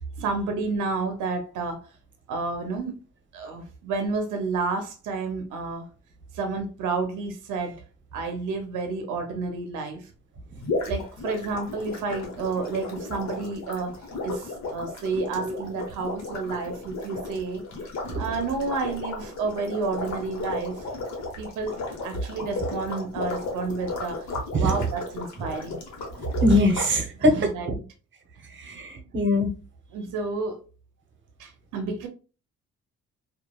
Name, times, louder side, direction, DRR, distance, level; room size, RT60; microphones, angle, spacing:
voice 1, 0.2-1.9 2.3-2.9 3.3-5.9 6.3-7.8 8.1-10.1 10.9-14.0 14.2-17.6 18.2-20.9 21.4-24.3 24.6-25.8 27.4-27.7 28.6-28.8 29.9-30.6 31.4-32.1, right 4 dB, 90° right, 0.6 m, -30 dB
sound 1, 10.6-26.9, left 3 dB, 65° left, 1.0 m, -34 dB
voice 2, 26.4-27.8 28.6-29.5, left 1 dB, 40° right, 0.8 m, -22 dB
2.9 x 2.3 x 2.2 m
cardioid pair, 90°, 30 cm